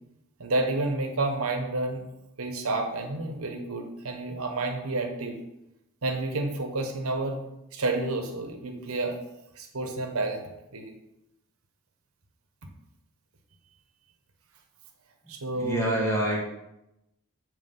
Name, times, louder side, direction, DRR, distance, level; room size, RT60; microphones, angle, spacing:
voice 1, 0.4-2.0 2.4-5.4 6.0-7.4 7.7-9.1 9.6-10.4 10.7-10.9 15.3-15.8, right 2 dB, 85° right, 3 dB, 1.1 m, -30 dB
voice 2, 15.6-16.4, right 1 dB, 15° left, -3 dB, 1.5 m, -26 dB
7.5 x 3.1 x 5.3 m, 0.87 s
head